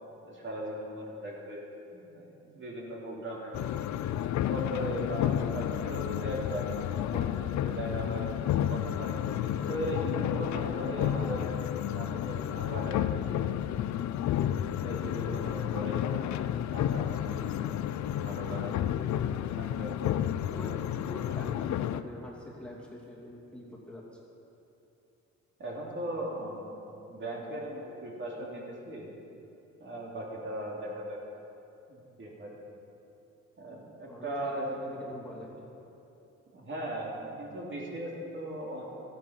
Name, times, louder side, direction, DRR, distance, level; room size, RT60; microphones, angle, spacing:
voice 1, 0.2-1.6 1.9-3.6 4.2-9.1 9.7-11.5 11.9-13.4 13.7-14.1 14.8-16.1 16.7-17.6 17.9-18.9 19.6-20.2 25.6-26.8 27.1-29.1 29.8-31.2 31.9-32.5 33.6-34.8 36.5-38.8, right 1 dB, 40° right, -3 dB, 3.1 m, -38 dB
sound 1, 3.5-22.0, left 11 dB, 65° left, 0.6 m, -31 dB
voice 2, 20.5-20.8 21.1-24.0 34.1-35.7, left 1 dB, 5° left, -5 dB, 2.7 m, -45 dB
14.0 x 11.0 x 5.9 m, 2.9 s
cardioid pair, 90°, 30 cm